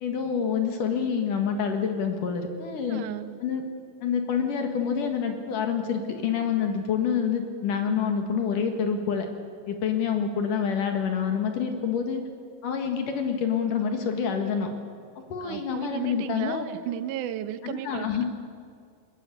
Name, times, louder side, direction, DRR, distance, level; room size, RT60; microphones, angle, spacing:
voice 1, 0.0-3.1 3.4-3.6 4.0-9.3 9.7-12.2 12.6-14.7 15.3-16.6 17.6-18.2, left 7 dB, 65° left, 5 dB, 3.3 m, -27 dB
voice 2, 2.9-3.4 15.4-18.2, right 12 dB, 70° right, 12 dB, 2.1 m, -34 dB
21.0 x 20.5 x 8.5 m, 2.1 s
omnidirectional pair, 4.1 m